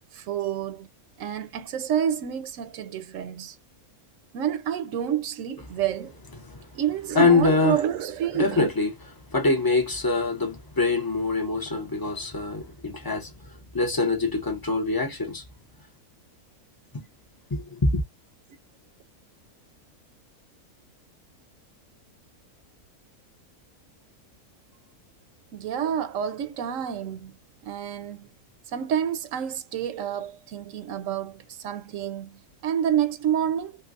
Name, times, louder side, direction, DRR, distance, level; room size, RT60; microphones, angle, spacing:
voice 1, 0.1-0.9 1.2-3.6 4.3-6.1 6.7-8.7 25.5-27.4 27.6-28.3 28.7-33.8, right 9 dB, 65° right, 0.9 m, -28 dB
voice 2, 7.1-7.8 8.4-8.9 9.3-13.3 13.7-15.4 16.9-17.0 17.5-18.0, left 3 dB, 30° left, 0.4 m, -24 dB
3.3 x 3.0 x 2.4 m
omnidirectional pair, 1.6 m